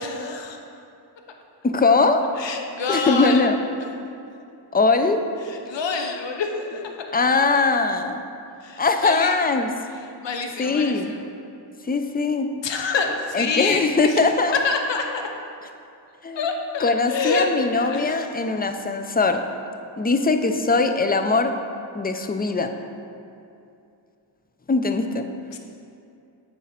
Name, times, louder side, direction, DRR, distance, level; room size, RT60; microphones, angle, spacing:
voice 1, 0.0-0.6 2.4-3.5 5.4-6.9 8.6-9.3 10.2-11.3 12.6-14.2 14.6-15.3 16.3-17.5 17.7-18.2 25.5-25.6, left 4 dB, 70° left, 3 dB, 0.7 m, -27 dB
voice 2, 1.6-2.2 2.9-3.6 4.7-5.2 7.1-8.2 8.8-9.7 10.6-11.1 11.9-12.5 13.3-14.6 16.2-16.5 16.8-19.4 20.0-21.5 21.9-22.7 24.7-25.3, left 3 dB, 20° left, 7 dB, 0.4 m, -21 dB
7.0 x 4.9 x 4.3 m, 2.6 s
wide cardioid pair, 70°, 46 cm